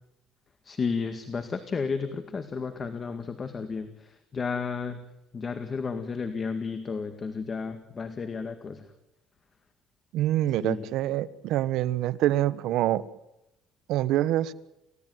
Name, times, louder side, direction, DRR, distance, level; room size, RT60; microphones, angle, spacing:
voice 1, 0.6-5.0 5.3-8.9 10.6-10.9, left 5 dB, 30° left, 8 dB, 2.1 m, -32 dB
voice 2, 10.1-13.0 13.9-14.5, right 13 dB, 70° right, 14 dB, 1.3 m, -25 dB
30.0 x 17.0 x 9.4 m, 0.88 s
cardioid pair, 140°, 0 cm